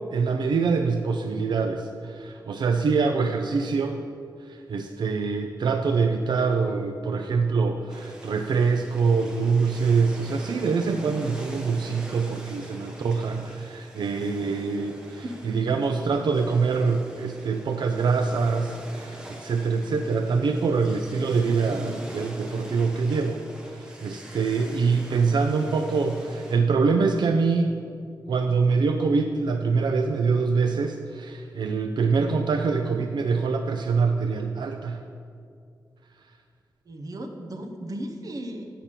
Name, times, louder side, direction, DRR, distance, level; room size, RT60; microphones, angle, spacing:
voice 1, 0.1-4.0 4.5-23.4 23.7-27.8 28.3-35.0, right 4 dB, 85° right, 6 dB, 0.4 m, -24 dB
sound 1, 7.9-26.6, equal, 10° right, 1.1 m, -43 dB
voice 2, 21.3-22.1 32.8-33.1 36.8-38.7, right 1 dB, 55° right, 4 dB, 0.9 m, -37 dB
8.1 x 5.8 x 7.3 m, 2.4 s
wide cardioid pair, 160°, 7 cm